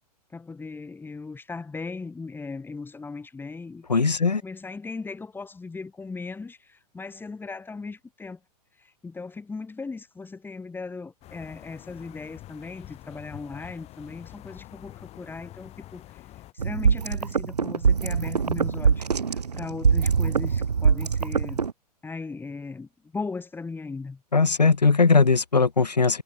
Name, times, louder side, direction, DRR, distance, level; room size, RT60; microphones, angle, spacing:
voice 1, 0.3-3.8 4.2-8.4 8.8-16.2 16.5-21.6 22.0-24.2, left 4 dB, 10° left, 5.4 m, -38 dB
voice 2, 3.9-4.4 24.3-26.2, left 4 dB, 85° left, 1.1 m, -19 dB
sound 1, 11.2-16.5, left 15 dB, 30° left, 7.1 m, -46 dB
sound 2, 16.6-21.7, right 6 dB, 75° right, 3.1 m, -23 dB
figure-of-eight pair, 105°, 21 cm